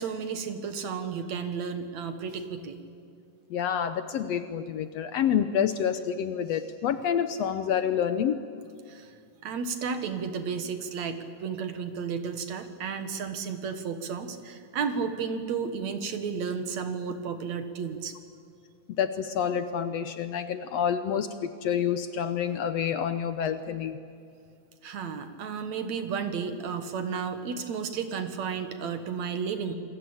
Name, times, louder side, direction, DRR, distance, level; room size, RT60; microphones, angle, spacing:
voice 1, 0.0-2.8 8.9-9.2 9.4-18.1 24.8-29.8, right 6 dB, 65° right, 8 dB, 2.6 m, -33 dB
voice 2, 3.5-8.4 19.0-24.0, left 8 dB, 70° left, 10 dB, 1.7 m, -28 dB
28.5 x 21.5 x 8.7 m, 2.4 s
omnidirectional pair, 3.5 m